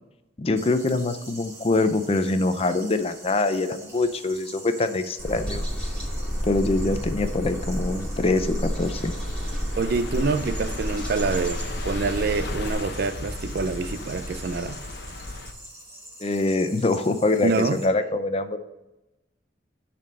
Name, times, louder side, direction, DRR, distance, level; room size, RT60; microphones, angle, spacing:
voice 1, 0.4-5.9 6.4-9.1 16.2-18.6, left 2 dB, 30° left, 0.5 m, -24 dB
sound 1, 0.6-17.8, right 1 dB, 15° right, 2.2 m, -45 dB
sound 2, 5.2-12.7, equal, 5° left, 2.8 m, -30 dB
sound 3, 9.7-15.5, left 2 dB, 60° left, 0.9 m, -37 dB
voice 2, 9.8-14.8 17.4-17.8, right 4 dB, 55° right, 0.5 m, -26 dB
9.2 x 4.3 x 5.4 m
head